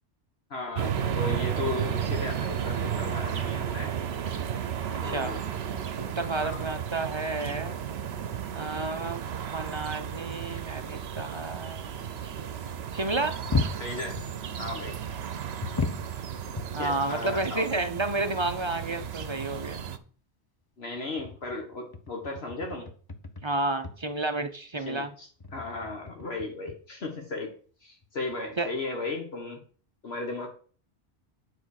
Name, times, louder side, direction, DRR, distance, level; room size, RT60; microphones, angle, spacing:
voice 1, 0.5-3.9 5.0-5.4 6.4-6.6 13.8-14.2 14.6-15.0 16.8-17.7 20.8-22.9 24.9-27.5 27.8-29.6 30.0-30.5, left 3 dB, 65° left, 2 dB, 1.6 m, -35 dB
sound 1, 0.8-20.0, right 8 dB, 65° right, 1.0 m, -33 dB
voice 2, 4.9-5.3 6.0-7.8 8.5-9.2 9.5-11.9 12.2-12.5 12.9-13.4 16.7-19.8 23.4-25.1 28.6-28.7, right 2 dB, 30° right, 8 dB, 0.7 m, -31 dB
sound 2, 13.0-14.6 15.6-17.6 18.0-18.1 18.6-18.7 19.0-19.6 20.9-23.5 23.8-24.1 25.4-26.8 28.0-28.1 28.3-28.5, left 4 dB, 25° left, 0.7 m, -35 dB
9.8 x 4.6 x 6.4 m, 0.43 s
omnidirectional pair, 1.2 m